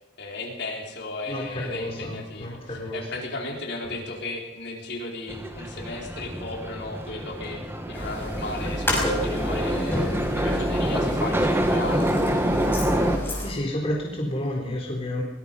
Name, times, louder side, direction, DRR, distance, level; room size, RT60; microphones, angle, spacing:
voice 1, 0.2-7.6 7.9-12.1, left 2 dB, 55° left, 0 dB, 4.3 m, -35 dB
voice 2, 1.3-3.0 3.9-4.0 13.4-15.2, left 1 dB, 30° left, -1 dB, 3.7 m, -30 dB
sound 1, 5.3-13.2, right 1 dB, 10° right, 1.8 m, -26 dB
sound 2, 7.9-13.5, equal, 10° left, 5.3 m, -30 dB
23.0 x 21.0 x 5.5 m, 1.0 s
head